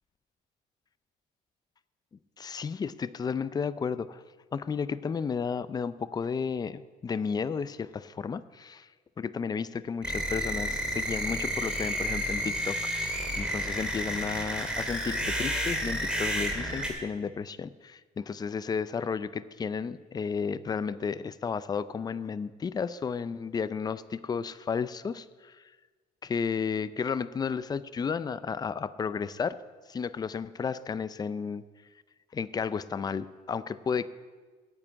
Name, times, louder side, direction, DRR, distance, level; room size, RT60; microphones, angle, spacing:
voice 1, 2.4-4.2 4.5-8.9 9.2-25.6 26.2-29.6 29.9-31.6 32.3-34.1, left 6 dB, 25° left, 15 dB, 0.4 m, -33 dB
sound 1, 10.0-16.9, equal, 5° right, 2.2 m, -31 dB
9.4 x 7.4 x 8.7 m, 1.4 s
cardioid pair, 110°, 17 cm